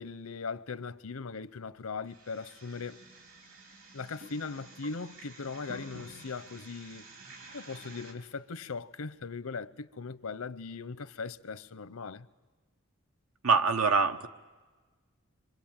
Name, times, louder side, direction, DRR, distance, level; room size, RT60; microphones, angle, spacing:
voice 1, 0.0-3.0 3.9-7.1 7.5-12.3, left 4 dB, 85° left, 0.8 m, -39 dB
sound 1, 2.0-8.1, right 2 dB, 70° right, 4.2 m, -50 dB
voice 2, 13.4-14.3, right 4 dB, 90° right, 1.2 m, -24 dB
27.5 x 25.0 x 8.8 m
head